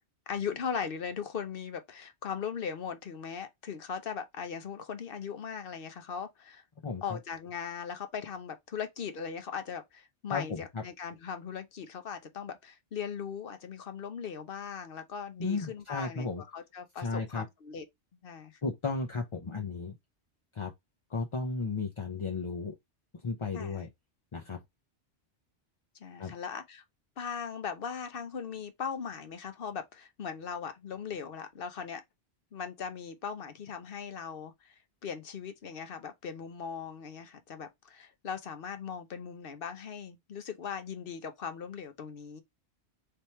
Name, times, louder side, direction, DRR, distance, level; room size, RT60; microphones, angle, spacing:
voice 1, 0.3-6.6 7.0-17.9 18.2-18.6 23.5-23.9 26.0-26.8 27.2-32.0 32.5-42.4, left 7 dB, 60° left, 0.9 m, -39 dB
voice 2, 10.3-10.6 15.4-16.4 17.0-17.4 18.6-19.9 20.5-20.7 21.1-22.7 23.2-23.9 24.3-24.6 26.2-26.3, left 4 dB, 35° left, 0.6 m, -34 dB
3.4 x 2.8 x 4.3 m
omnidirectional pair, 1.2 m